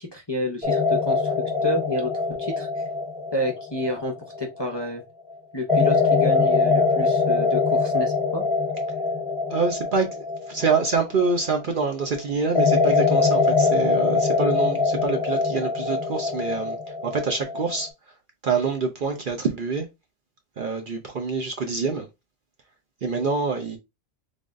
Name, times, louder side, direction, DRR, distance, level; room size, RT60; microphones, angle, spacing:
voice 1, 0.0-2.1 2.4-2.8 3.3-5.0 5.5-8.5, left 1 dB, 25° left, 0.5 m, -30 dB
sound 1, 0.6-4.8 5.7-11.7 12.5-17.9, left 4 dB, ahead, 1.6 m, -23 dB
voice 2, 9.5-16.8 17.0-17.9 18.4-19.9 20.6-22.1 23.0-23.8, right 4 dB, 55° right, 0.6 m, -26 dB
3.4 x 3.4 x 2.5 m
omnidirectional pair, 1.4 m